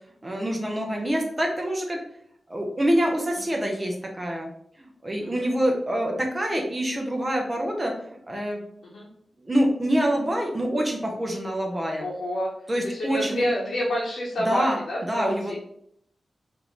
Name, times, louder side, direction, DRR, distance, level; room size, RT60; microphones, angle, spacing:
voice 1, 0.2-2.0 2.5-4.5 4.8-8.6 9.4-12.1 12.7-13.4 14.5-14.8 15.1-15.6, equal, 20° right, 1 dB, 0.6 m, -26 dB
voice 2, 12.0-12.5 12.8-15.6, left 1 dB, 85° left, -6 dB, 0.8 m, -29 dB
3.6 x 2.5 x 3.0 m, 0.70 s
wide cardioid pair, 160°, 0 cm